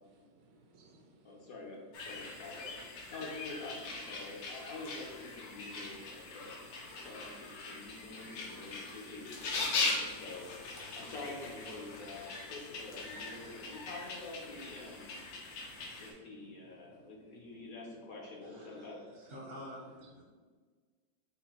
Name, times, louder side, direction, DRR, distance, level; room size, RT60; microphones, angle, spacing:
voice 1, 0.1-1.5 2.1-2.3 2.7-3.1 4.3-4.4 5.5-6.6 6.8-9.0 9.8-10.2 10.9-11.0 11.8-12.0 13.3-13.8 15.2-17.3 20.0-20.2, right 1 dB, 75° right, 2 dB, 1.3 m, -64 dB
voice 2, 1.2-6.5 7.0-10.4 11.0-15.2 16.0-19.0, left 3 dB, 60° left, -1 dB, 1.1 m, -47 dB
sound 1, 1.9-16.1, left 3 dB, 75° left, 1.5 m, -41 dB
voice 3, 18.4-20.2, equal, 45° right, -3 dB, 0.8 m, -49 dB
5.5 x 2.2 x 4.3 m, 1.5 s
omnidirectional pair, 2.0 m